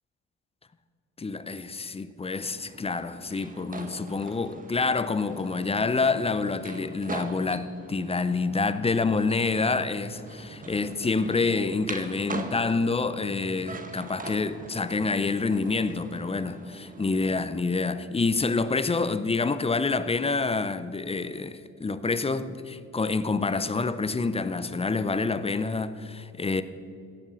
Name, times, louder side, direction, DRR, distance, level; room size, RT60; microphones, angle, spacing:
voice 1, 1.2-26.6, left 4 dB, 20° left, 0.6 m, -27 dB
sound 1, 2.4-17.3, right 3 dB, 25° right, 1.2 m, -42 dB
16.0 x 7.3 x 6.2 m
cardioid pair, 90°, 30 cm